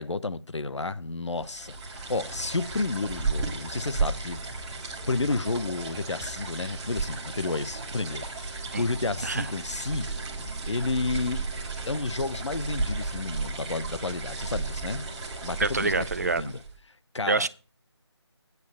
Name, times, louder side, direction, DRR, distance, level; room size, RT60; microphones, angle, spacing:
voice 1, 0.0-4.4 4.8-10.2 10.7-11.5 11.8-15.0 15.4-16.6 17.1-17.5, left 3 dB, 80° left, 0.9 m, -31 dB
sound 1, 1.4-16.8, right 3 dB, 10° right, 1.5 m, -34 dB
voice 2, 15.6-16.5 17.3-17.5, right 3 dB, 35° right, 0.5 m, -26 dB
9.2 x 5.4 x 7.4 m
figure-of-eight pair, 165°, 15 cm